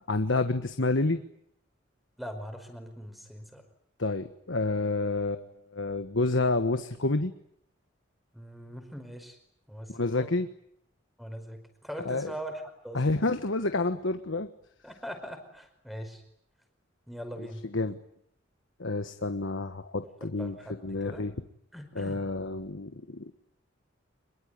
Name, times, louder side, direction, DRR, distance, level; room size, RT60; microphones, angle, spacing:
voice 1, 0.1-1.2 4.0-7.3 9.9-10.5 12.0-12.3 12.9-14.5 17.4-17.5 17.7-18.0 18.8-20.5 20.8-21.3 21.9-23.3, left 2 dB, 75° left, 9 dB, 1.4 m, -29 dB
voice 2, 2.2-3.6 8.3-9.4 9.7-10.3 11.2-12.5 12.8-13.0 14.8-16.2 17.1-17.6 20.4-20.7 21.0-21.2 21.7-22.2, equal, ahead, 7 dB, 5.1 m, -41 dB
26.0 x 22.5 x 9.7 m, 0.72 s
head